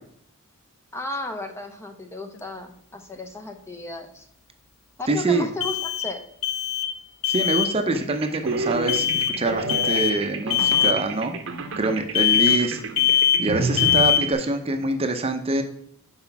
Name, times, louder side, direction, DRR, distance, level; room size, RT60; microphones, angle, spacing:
voice 1, 0.9-4.3 5.0-6.2, left 2 dB, 10° left, 5 dB, 0.6 m, -34 dB
sound 1, 2.3-2.4 5.6-7.0 7.2-7.7 8.9-9.4 9.7-10.2 10.5-11.0 12.1-12.7 13.0-13.5 13.8-14.3, left 10 dB, 70° left, 0.5 m, -21 dB
voice 2, 5.1-5.5 7.3-11.4 11.8-15.6, right 2 dB, 30° right, 7 dB, 0.6 m, -25 dB
sound 2, 7.9-14.3, right 3 dB, 65° right, 0.8 m, -30 dB
5.9 x 4.4 x 5.8 m, 0.68 s
head